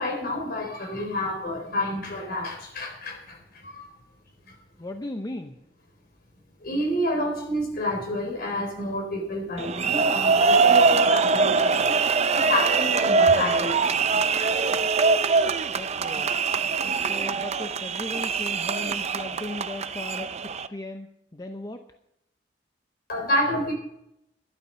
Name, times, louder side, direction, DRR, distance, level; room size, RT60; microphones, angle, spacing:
voice 1, 0.0-3.9 4.5-4.6 6.6-12.0 12.3-13.8 23.1-23.7, left 1 dB, 55° left, 2 dB, 4.2 m, -29 dB
voice 2, 4.8-5.6 15.8-16.3 17.1-20.4 20.7-21.8, left 1 dB, 20° left, 5 dB, 0.7 m, -36 dB
sound 1, 9.6-20.7, right 4 dB, 35° right, 0.5 m, -23 dB
12.5 x 11.5 x 5.7 m, 0.81 s
head